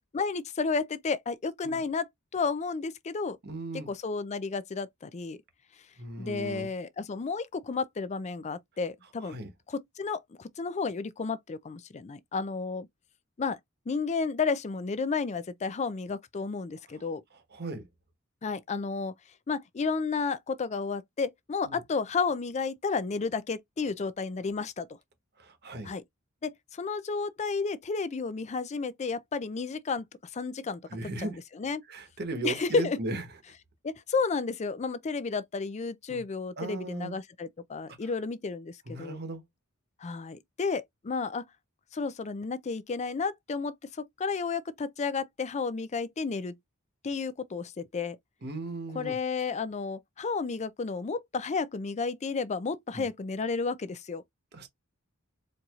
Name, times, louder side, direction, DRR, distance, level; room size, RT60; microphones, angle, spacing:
voice 1, 0.1-2.0 2.3-3.4 3.9-5.4 6.2-9.4 9.7-12.9 13.4-13.6 13.9-17.2 18.4-19.1 19.5-24.9 25.8-26.0 26.4-30.1 30.3-30.8 31.2-31.8 32.4-33.0 33.8-39.2 40.0-41.4 41.9-43.7 44.2-46.6 47.0-48.2 48.9-54.2, left 4 dB, 30° left, 0.4 m, -32 dB
voice 2, 3.4-3.9 6.0-6.7 9.2-9.5 17.5-17.8 21.6-21.8 25.4-25.9 30.9-31.4 31.9-33.2 36.1-36.2 36.6-37.1 38.0-38.1 38.9-39.4 48.4-49.2 52.9-53.1 54.5-54.7, right 2 dB, 50° right, 1.0 m, -37 dB
4.5 x 2.7 x 2.4 m
head